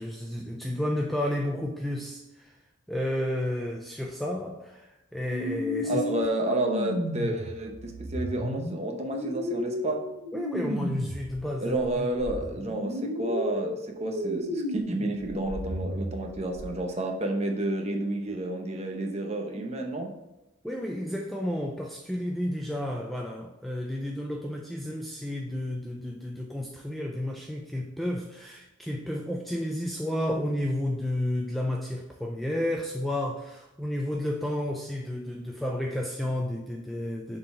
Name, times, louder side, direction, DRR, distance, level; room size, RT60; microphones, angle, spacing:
voice 1, 0.0-2.5 2.9-6.0 10.3-12.1 20.6-37.4, left 1 dB, ahead, 0 dB, 0.3 m, -31 dB
sound 1, 5.3-11.3 11.7-16.7, equal, 65° right, 1.0 m, -33 dB
voice 2, 5.8-10.0 11.6-20.1, right 1 dB, 30° right, 2 dB, 0.8 m, -30 dB
6.6 x 4.0 x 4.3 m, 0.99 s
head